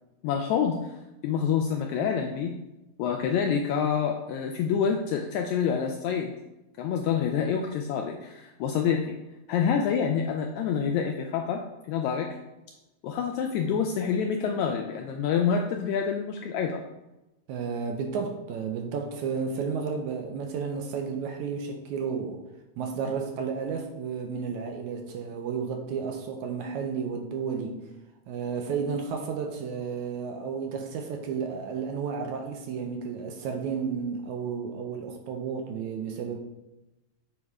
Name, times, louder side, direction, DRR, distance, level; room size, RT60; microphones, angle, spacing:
voice 1, 0.2-0.9 1.2-2.5 3.0-6.3 6.8-9.2 9.5-11.6 11.9-12.3 13.0-16.8, left 7 dB, 80° left, 3 dB, 1.6 m, -27 dB
voice 2, 17.5-22.4 22.8-27.8 28.3-36.4, right 6 dB, 75° right, 3 dB, 1.9 m, -32 dB
8.2 x 3.6 x 4.8 m, 0.98 s
omnidirectional pair, 3.7 m